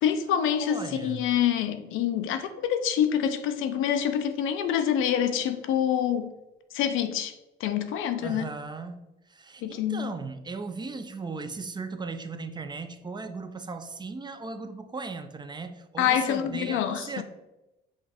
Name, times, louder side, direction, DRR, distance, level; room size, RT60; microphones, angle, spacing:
voice 1, 0.0-6.3 6.7-7.3 7.6-8.5 9.6-10.1 16.0-17.2, left 9 dB, 90° left, 0.5 m, -26 dB
voice 2, 0.6-1.3 8.2-9.0 9.3-17.2, right 4 dB, 20° right, 0.4 m, -37 dB
5.4 x 2.4 x 3.4 m
cardioid pair, 90°, 20 cm